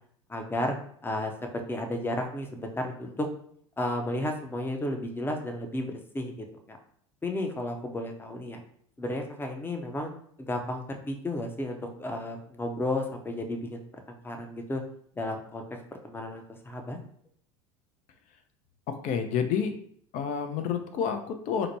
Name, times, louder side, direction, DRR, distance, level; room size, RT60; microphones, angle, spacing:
voice 1, 0.3-0.7 1.0-3.3 3.8-6.8 7.2-8.6 9.0-10.1 10.5-14.8 15.2-17.0, left 1 dB, 15° left, 4 dB, 0.6 m, -33 dB
voice 2, 18.9-19.7 20.1-21.7, left 7 dB, 55° left, 7 dB, 0.6 m, -29 dB
2.9 x 2.1 x 4.1 m, 0.62 s
hypercardioid pair, 85°, 16 cm